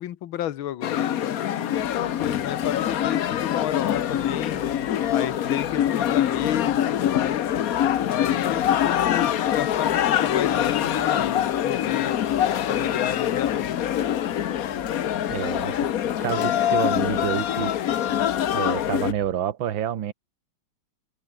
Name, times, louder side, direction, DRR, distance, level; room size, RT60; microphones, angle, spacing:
voice 1, 0.0-4.6 5.1-7.5 8.1-13.9, left 12 dB, 85° left, 1.8 m, -32 dB
sound 1, 0.8-19.1, left 10 dB, 55° left, 1.1 m, -24 dB
sound 2, 1.7-19.4, right 3 dB, 35° right, 3.0 m, -48 dB
voice 2, 15.3-15.8 16.2-17.7 18.5-20.1, right 10 dB, 75° right, 2.0 m, -28 dB
omnidirectional pair, 2.2 m